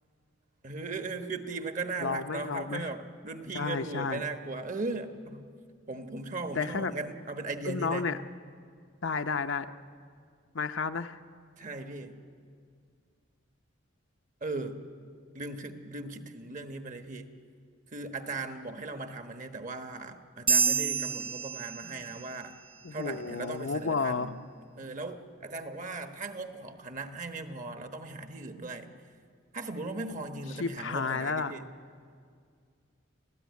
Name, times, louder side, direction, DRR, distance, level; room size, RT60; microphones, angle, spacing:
voice 1, 0.6-5.5 5.9-8.1 11.6-12.2 14.4-14.8 15.3-17.3 17.9-22.6 22.9-24.4 24.7-28.9 29.5-31.6, right 3 dB, 40° right, 7 dB, 1.3 m, -38 dB
voice 2, 2.0-2.9 3.5-4.2 6.5-6.9 7.6-8.2 9.0-9.7 10.5-11.2 22.8-24.3 30.6-31.5, left 4 dB, 65° left, 8 dB, 0.8 m, -31 dB
sound 1, 20.5-22.3, right 5 dB, 25° right, 1.0 m, -28 dB
30.0 x 13.5 x 9.5 m, 2.2 s
head